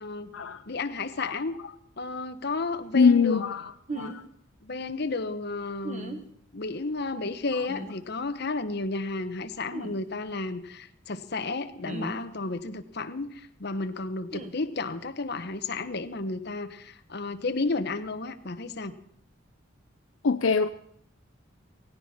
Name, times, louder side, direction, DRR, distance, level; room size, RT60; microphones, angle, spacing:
voice 1, 0.0-0.3 0.7-1.5 2.0-4.1 4.6-6.2 6.5-18.9, left 3 dB, 55° left, 1.0 m, -32 dB
voice 2, 2.9-3.6 4.0-4.2 20.2-20.7, left 5 dB, 85° left, 0.6 m, -23 dB
sound 1, 3.9-4.2 5.8-6.2 7.7-7.9 9.7-9.9 11.8-12.2 14.3-14.5, right 2 dB, 35° right, 1.5 m, -36 dB
17.0 x 16.5 x 4.3 m
head